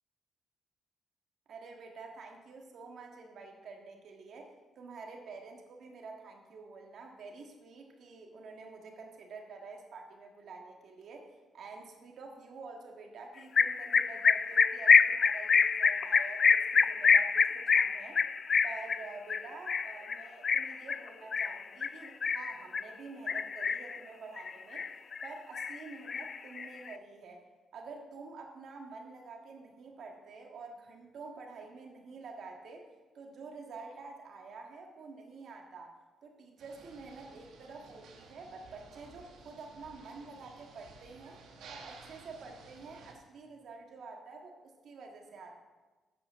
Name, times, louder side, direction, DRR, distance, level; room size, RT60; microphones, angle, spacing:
voice 1, 1.5-18.2 18.6-24.9 25.2-27.4 27.7-32.9 33.1-35.9 36.2-41.4 41.7-45.6, right 4 dB, 65° right, 2 dB, 1.6 m, -48 dB
sound 1, 13.6-22.9 23.3-24.0 24.4-25.3 25.5-26.9, left 5 dB, 45° left, 0.3 m, -26 dB
sound 2, 36.6-43.1, right 4 dB, 80° right, 1.4 m, -54 dB
7.9 x 5.7 x 6.9 m, 1.3 s
cardioid pair, 90°, 0 cm